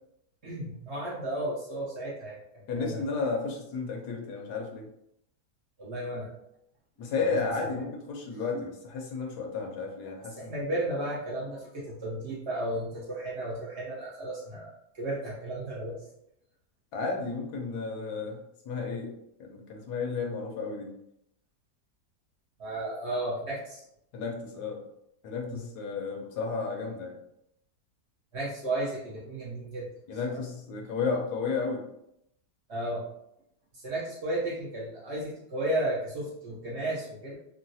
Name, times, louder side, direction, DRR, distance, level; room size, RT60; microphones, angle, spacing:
voice 1, 0.4-3.0 5.8-6.3 7.6-7.7 10.4-16.0 22.6-23.8 25.5-25.6 28.3-29.9 30.3-30.4 32.7-33.1 33.7-37.3, right 1 dB, 50° right, -6 dB, 1.0 m, -34 dB
voice 2, 2.7-4.9 7.0-10.5 16.9-18.4 18.7-19.1 19.4-20.9 24.1-24.8 25.2-27.2 30.1-31.8, left 4 dB, 80° left, 1 dB, 1.2 m, -32 dB
3.8 x 2.1 x 2.7 m, 0.77 s
omnidirectional pair, 1.7 m